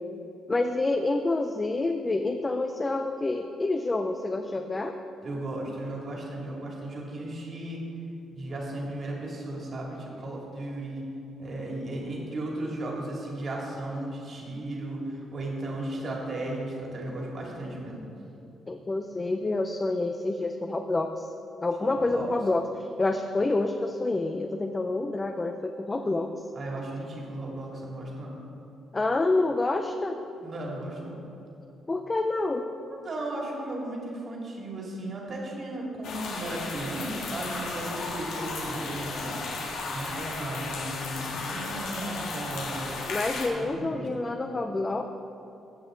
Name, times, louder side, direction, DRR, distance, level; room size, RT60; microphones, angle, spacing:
voice 1, 0.5-4.9 18.7-21.3 21.6-26.3 28.9-30.1 31.9-32.7 43.1-45.0, left 2 dB, 25° left, 5 dB, 0.5 m, -28 dB
voice 2, 5.2-7.8 8.3-11.1 11.4-18.1 21.8-22.3 26.5-28.4 30.4-31.2 32.9-39.3 39.9-42.9 43.5-44.1, right 1 dB, 50° right, -2 dB, 2.5 m, -35 dB
sound 1, 36.0-43.5, left 3 dB, 85° left, 1.6 m, -34 dB
16.5 x 6.2 x 3.8 m, 2.9 s
cardioid pair, 90°, 0 cm